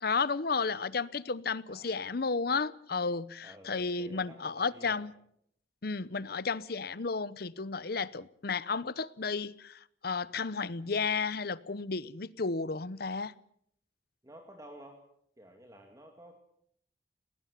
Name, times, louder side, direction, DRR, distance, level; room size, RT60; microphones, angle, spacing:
voice 1, 0.0-5.1 5.8-13.3, left 4 dB, 55° left, 19 dB, 0.8 m, -33 dB
voice 2, 1.7-2.0 3.4-5.0 14.2-15.1 15.4-16.4, equal, 20° right, 3 dB, 2.3 m, -52 dB
20.0 x 18.0 x 8.2 m, 0.71 s
head